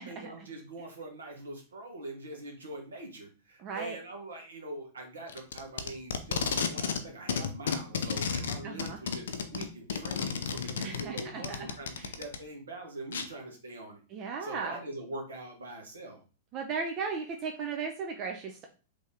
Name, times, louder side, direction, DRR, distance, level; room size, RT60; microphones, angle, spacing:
voice 1, 0.0-14.0 14.4-16.2, right 2 dB, 75° right, 2 dB, 1.1 m, -43 dB
voice 2, 3.6-4.0 8.6-9.0 10.8-11.7 12.0-12.1 14.1-14.8 16.5-18.7, right 5 dB, 35° right, 2 dB, 0.5 m, -36 dB
Packing tape duct tape, 5.3-7.0 7.3-12.4 13.1-13.2, left 6 dB, 65° left, 0.5 m, -32 dB
3.4 x 2.7 x 3.4 m, 0.36 s
figure-of-eight pair, 100°, 0 cm